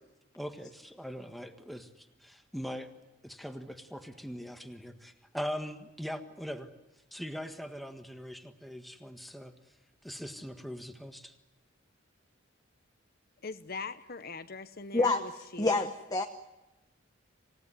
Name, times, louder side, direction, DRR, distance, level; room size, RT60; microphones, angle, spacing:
voice 1, 0.3-2.9 3.2-6.7 7.1-9.5 10.0-11.3, equal, ahead, 6 dB, 1.6 m, -41 dB
voice 2, 13.4-15.9, left 4 dB, 50° left, 11 dB, 1.0 m, -42 dB
voice 3, 15.6-16.2, left 3 dB, 20° left, 5 dB, 1.1 m, -27 dB
27.0 x 18.0 x 9.9 m, 1.0 s
head